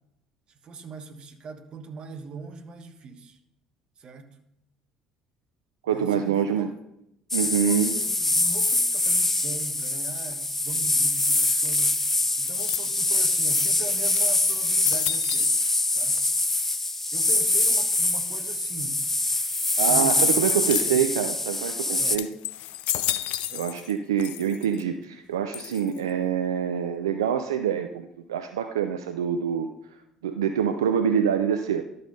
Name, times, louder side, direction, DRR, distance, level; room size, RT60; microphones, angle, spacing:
voice 1, 0.6-3.4 4.0-4.4 5.9-6.7 7.4-15.6 15.9-16.2 17.1-19.1 19.9-21.1 22.0-22.2 23.5-23.7, right 5 dB, 45° right, 7 dB, 1.3 m, -41 dB
voice 2, 5.8-6.7 7.3-8.0 19.8-22.3 23.5-29.7 30.2-31.8, right 8 dB, 80° right, 8 dB, 0.5 m, -25 dB
sound 1, 7.3-22.2, left 2 dB, 15° left, 0.7 m, -24 dB
sound 2, 12.5-13.2 13.8-13.9 14.2-15.9 16.2-16.8 17.5-18.0 20.5-21.2 21.7-21.8 22.2-23.9 24.2-24.8 25.5-26.1, left 14 dB, 65° left, 0.5 m, -32 dB
12.0 x 5.5 x 5.4 m, 0.79 s
figure-of-eight pair, 60°, 2 cm